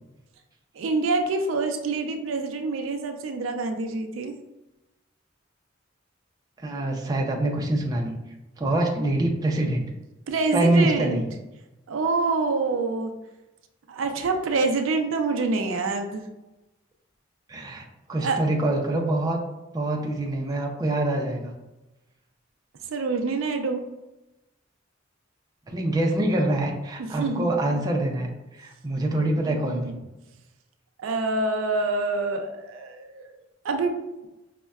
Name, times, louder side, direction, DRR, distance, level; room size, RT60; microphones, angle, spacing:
voice 1, 0.7-4.3 10.3-11.2 11.9-13.1 13.9-16.2 18.2-18.4 22.8-23.9 27.0-27.8 29.5-30.0 31.0-33.3 33.6-34.0, right 3 dB, 80° right, 5 dB, 0.4 m, -26 dB
voice 2, 6.6-8.2 8.6-9.9 10.5-11.2 17.5-19.4 19.7-21.5 25.7-30.0, right 1 dB, 20° right, 0 dB, 0.4 m, -25 dB
5.2 x 2.1 x 2.3 m, 1.0 s
head